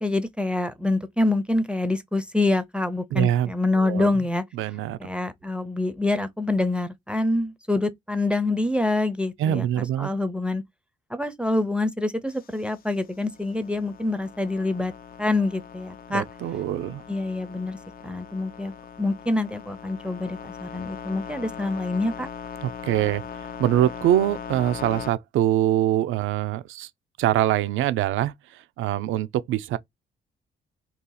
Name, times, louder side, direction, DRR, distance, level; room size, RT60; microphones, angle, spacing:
voice 1, 0.0-4.4 5.0-10.6 11.1-14.9 15.2-16.2 17.1-17.8 18.0-18.7 19.0-22.3, left 2 dB, 5° right, 0.5 m, -26 dB
voice 2, 3.1-4.2 4.5-5.0 9.4-10.1 16.1-17.0 22.6-23.2 23.6-26.9 27.2-29.8, right 12 dB, 80° right, 0.5 m, -24 dB
sound 1, 12.3-25.1, left 7 dB, 50° left, 0.5 m, -40 dB
2.8 x 2.4 x 3.8 m
cardioid pair, 90°, 20 cm